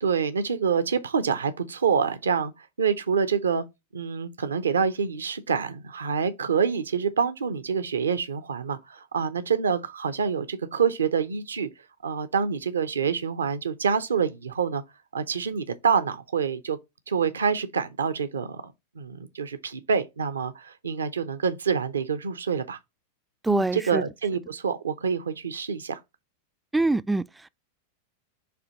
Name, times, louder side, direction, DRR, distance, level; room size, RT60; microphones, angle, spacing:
voice 1, 0.0-3.7 3.9-11.7 12.0-14.8 15.1-16.8 17.1-22.8 23.5-26.0, right 6 dB, 70° right, 0.6 m, -27 dB
voice 2, 23.4-24.0 26.7-27.5, right 2 dB, 5° right, 0.3 m, -24 dB
6.9 x 2.8 x 5.1 m
figure-of-eight pair, 90°, 0 cm